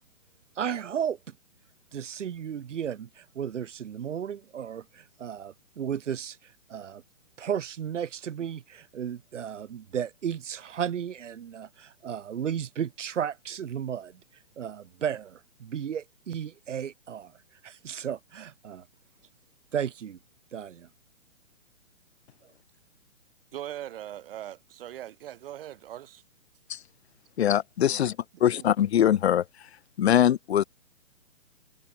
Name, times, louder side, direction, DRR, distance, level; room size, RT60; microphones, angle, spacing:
voice 1, 0.6-1.2 1.9-7.0 7.4-14.2 14.6-17.3 17.6-18.8 19.7-20.2 20.5-20.9, right 8 dB, 65° right, 1.7 m, -34 dB
voice 2, 23.5-26.2 27.9-28.7, right 12 dB, 45° right, 1.9 m, -41 dB
voice 3, 27.4-28.2 28.4-29.4 30.0-30.6, left 10 dB, 55° left, 1.0 m, -22 dB
hypercardioid pair, 145°, 39 cm